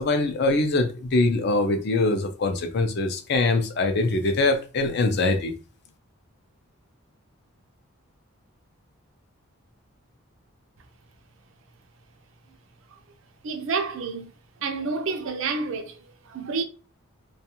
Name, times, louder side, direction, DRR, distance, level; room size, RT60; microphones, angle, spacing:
voice 1, 0.0-5.5, left 2 dB, 50° left, 0.4 m, -23 dB
voice 2, 13.4-14.3 14.6-16.6, right 4 dB, 60° right, 0.4 m, -29 dB
2.3 x 2.3 x 2.8 m
head